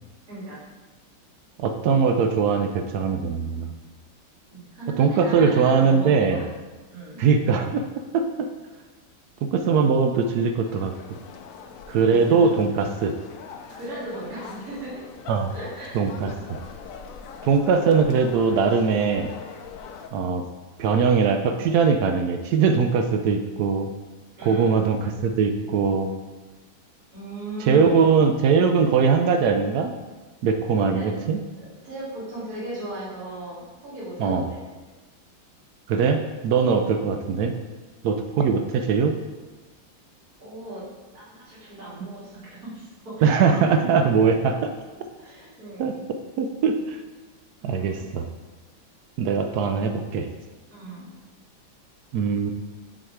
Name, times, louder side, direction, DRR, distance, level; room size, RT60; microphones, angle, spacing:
voice 1, 0.3-0.6 4.5-6.5 6.9-7.2 12.0-12.7 13.7-15.0 15.5-16.7 24.4-24.7 27.1-28.0 30.8-31.1 31.6-34.7 36.6-36.8 40.4-40.9 41.1-43.6 45.2-46.0 47.6-48.1 50.7-51.1, right 1 dB, 50° right, -10 dB, 3.0 m, -37 dB
voice 2, 1.6-3.7 5.0-6.4 7.2-7.8 8.1-8.5 9.4-10.9 11.9-13.1 15.3-15.5 15.9-16.3 17.4-19.3 20.1-20.4 20.8-23.9 24.4-26.1 27.6-29.9 30.4-31.4 34.2-34.5 35.9-37.5 38.0-39.1 42.0-42.1 43.2-44.7 45.8-45.9 46.4-47.0 47.6-48.3 49.2-50.3 52.1-52.5, right 5 dB, 75° right, 6 dB, 0.9 m, -21 dB
sound 1, 10.6-20.1, left 6 dB, 85° left, 0.7 m, -42 dB
6.2 x 4.8 x 4.7 m, 1.2 s
omnidirectional pair, 2.1 m